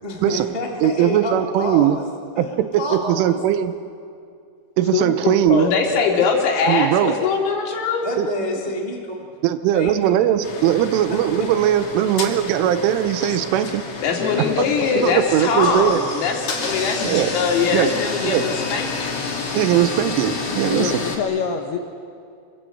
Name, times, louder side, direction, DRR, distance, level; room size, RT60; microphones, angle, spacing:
voice 1, 0.0-2.0 2.3-3.4 8.0-9.1 9.7-10.2 11.4-11.5, left 1 dB, 20° right, -1 dB, 1.1 m, -28 dB
voice 2, 0.8-2.0 2.4-2.9 3.2-3.7 4.8-5.7 6.7-7.2 8.2-8.3 9.4-13.8 14.6-14.7 15.0-16.0 17.0-17.3 17.7-18.0 18.2-18.5 19.6-20.9, right 11 dB, 80° right, 11 dB, 3.3 m, -19 dB
voice 3, 4.9-5.9 6.1-6.3 14.2-15.1 20.6-21.8, left 6 dB, 70° left, 5 dB, 2.6 m, -26 dB
voice 4, 5.5-8.1 14.0-19.2, left 5 dB, 85° left, 1 dB, 5.5 m, -22 dB
sound 1, 10.4-21.2, left 4 dB, 40° left, 2.5 m, -30 dB
27.5 x 23.0 x 7.9 m, 2.4 s
omnidirectional pair, 5.9 m